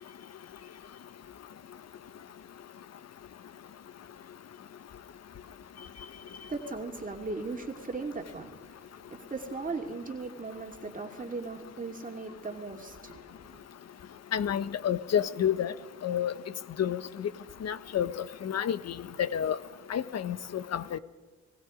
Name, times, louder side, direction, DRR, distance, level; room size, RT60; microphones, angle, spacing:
voice 1, 6.1-13.6, right 3 dB, 25° right, 4 dB, 2.5 m, -38 dB
voice 2, 14.3-15.7 16.0-16.4 16.8-17.3 17.6-18.1 18.4-19.6 19.9-21.0, left 9 dB, 60° left, 13 dB, 1.3 m, -29 dB
30.0 x 20.0 x 5.2 m, 1.2 s
cardioid pair, 90°, 30 cm